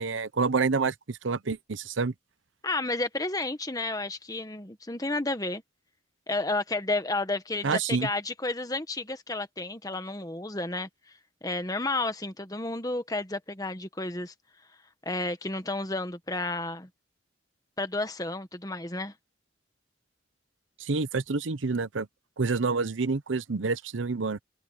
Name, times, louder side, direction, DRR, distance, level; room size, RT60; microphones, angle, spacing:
voice 1, 0.0-2.1 7.6-8.1 20.8-22.1 22.4-24.4, right 4 dB, 80° right, 0.8 m, -28 dB
voice 2, 2.6-5.6 6.3-10.9 11.4-14.3 15.0-16.9 17.8-19.1, left 2 dB, 20° left, 1.3 m, -31 dB
head